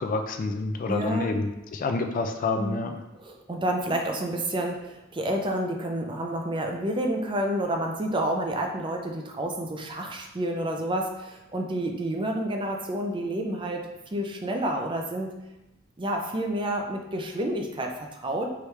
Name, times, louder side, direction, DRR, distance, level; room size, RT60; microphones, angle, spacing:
voice 1, 0.0-3.0, left 3 dB, 40° left, 6 dB, 0.3 m, -28 dB
voice 2, 0.9-1.4 2.6-2.8 3.1-15.3 16.0-18.5, right 1 dB, 25° right, 2 dB, 0.5 m, -29 dB
4.7 x 3.4 x 3.1 m, 0.97 s
head